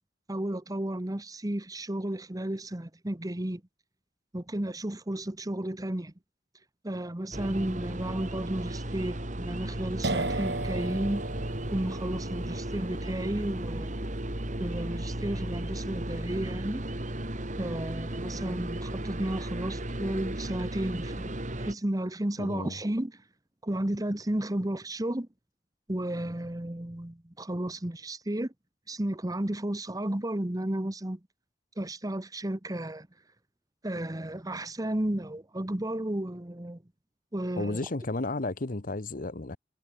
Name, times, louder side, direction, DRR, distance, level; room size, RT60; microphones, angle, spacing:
voice 1, 0.3-3.6 4.3-6.1 6.8-11.4 11.7-13.9 14.6-16.8 17.6-23.1 23.6-25.3 25.9-28.5 28.9-31.2 31.8-33.1 33.8-36.8 37.3-37.8, right 1 dB, 20° right, 1.1 m, -33 dB
sound 1, 7.3-21.7, right 1 dB, 45° right, 3.0 m, -35 dB
sound 2, 10.0-17.6, right 2 dB, 70° right, 6.5 m, -38 dB
voice 2, 22.4-22.8 37.6-39.6, left 2 dB, 50° left, 1.1 m, -33 dB
head